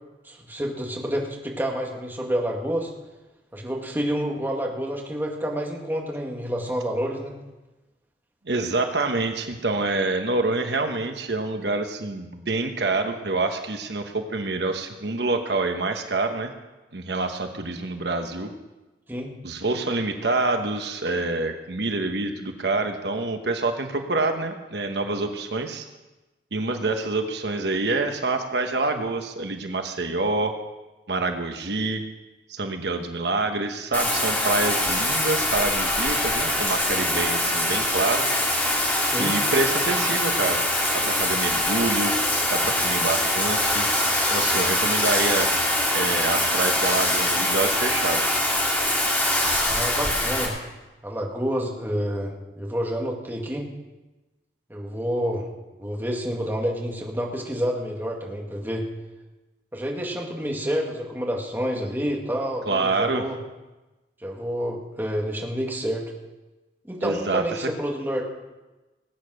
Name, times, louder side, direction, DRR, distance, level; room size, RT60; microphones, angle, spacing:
voice 1, 0.2-2.9 3.5-7.4 19.1-19.3 39.0-39.4 49.6-50.5 51.0-53.7 54.7-55.5 55.8-58.9 59.7-63.4 64.2-66.0 66.8-68.2, equal, 10° right, -1 dB, 2.0 m, -28 dB
voice 2, 8.5-16.5 16.9-18.5 19.4-25.9 26.5-30.5 31.1-32.0 32.5-38.3 39.2-40.6 40.9-42.2 42.5-43.9 44.3-45.5 45.9-48.4 62.7-63.3 67.0-67.7, right 3 dB, 70° right, 5 dB, 1.1 m, -26 dB
Bathtub (filling or washing), 33.9-50.5, left 1 dB, 10° left, 2.5 m, -23 dB
19.0 x 8.9 x 6.4 m, 1.1 s
head